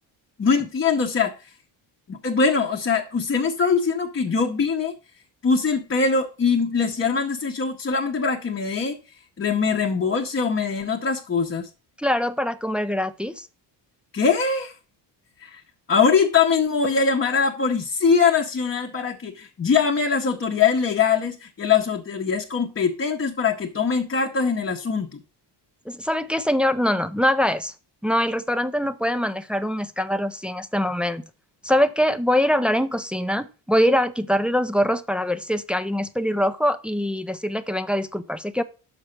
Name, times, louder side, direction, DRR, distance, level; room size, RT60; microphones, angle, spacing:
voice 1, 0.4-1.5 2.1-4.9 5.4-9.0 9.4-11.7 14.1-14.7 15.4-15.6 15.9-25.2, left 5 dB, 30° left, 0.8 m, -22 dB
voice 2, 12.0-13.5 25.9-27.7 28.0-31.2 31.6-38.6, equal, 5° right, 0.3 m, -23 dB
6.0 x 5.6 x 6.5 m
cardioid pair, 135°, 45 cm